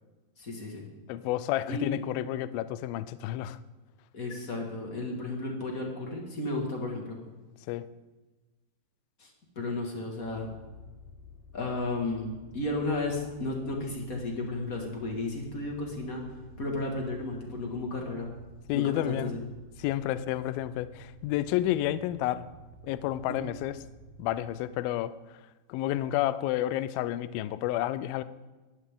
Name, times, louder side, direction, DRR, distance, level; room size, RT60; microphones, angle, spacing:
voice 1, 0.4-0.9 1.7-2.0 4.1-7.2 9.2-10.5 11.5-18.3 18.7-19.4 23.3-23.4, left 2 dB, 40° left, 1 dB, 1.2 m, -33 dB
voice 2, 1.1-3.6 7.7-7.9 18.7-19.3 19.8-22.4 22.8-23.8 24.2-25.1 25.7-28.2, left 13 dB, 85° left, 14 dB, 2.1 m, -30 dB
sound 1, 10.2-24.4, right 1 dB, 25° right, 2.5 m, -52 dB
21.5 x 15.5 x 3.8 m, 1.2 s
omnidirectional pair, 5.0 m